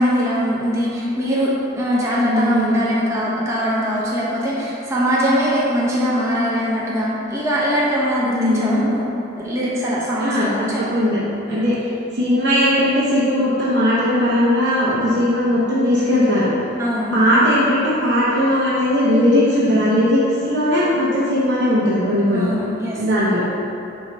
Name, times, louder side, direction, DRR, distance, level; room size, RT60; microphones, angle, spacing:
voice 1, 0.0-9.1 9.4-10.9 11.5-11.7 16.8-17.5 22.3-23.0, equal, 15° right, -7 dB, 0.7 m, -21 dB
voice 2, 2.2-2.8 8.3-8.9 10.2-11.8 12.1-16.5 17.1-22.5 22.9-23.4, equal, 65° right, -8 dB, 0.9 m, -18 dB
7.7 x 2.7 x 5.2 m, 2.7 s
head